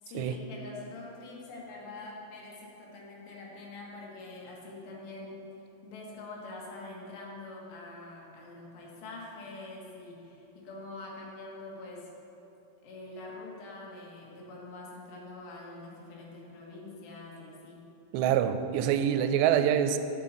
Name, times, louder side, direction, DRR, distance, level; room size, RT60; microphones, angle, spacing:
voice 1, 0.0-12.1 12.8-17.8 18.7-19.2, left 2 dB, 85° left, -3 dB, 3.9 m, -45 dB
voice 2, 18.1-20.0, right 9 dB, 90° right, 10 dB, 2.8 m, -25 dB
8.5 x 7.4 x 7.5 m, 3.0 s
omnidirectional pair, 4.8 m